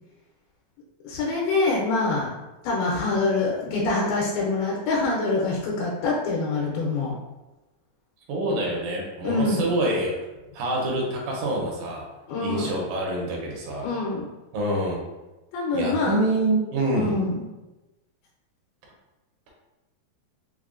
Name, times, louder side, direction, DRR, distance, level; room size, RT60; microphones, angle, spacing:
voice 1, 1.0-2.3 2.6-7.2 9.2-9.7 12.3-12.8 13.8-14.3 15.5-16.2 16.9-17.4, left 3 dB, 85° left, -4 dB, 2.6 m, -25 dB
voice 2, 8.3-10.2 10.5-12.1 12.4-13.9 14.5-15.0 15.7-17.1, right 1 dB, 75° right, -2 dB, 2.3 m, -26 dB
6.0 x 2.1 x 2.4 m, 1.1 s
omnidirectional pair, 4.3 m